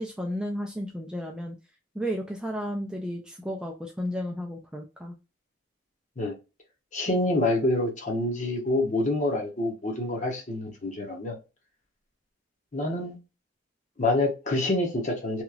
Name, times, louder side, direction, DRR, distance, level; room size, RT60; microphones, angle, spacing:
voice 1, 0.0-1.6 1.9-5.1, equal, 5° right, 0.3 m, -33 dB
voice 2, 6.9-11.4 12.7-13.2 14.0-15.4, left 2 dB, 40° left, 0.8 m, -27 dB
2.9 x 2.5 x 2.3 m
head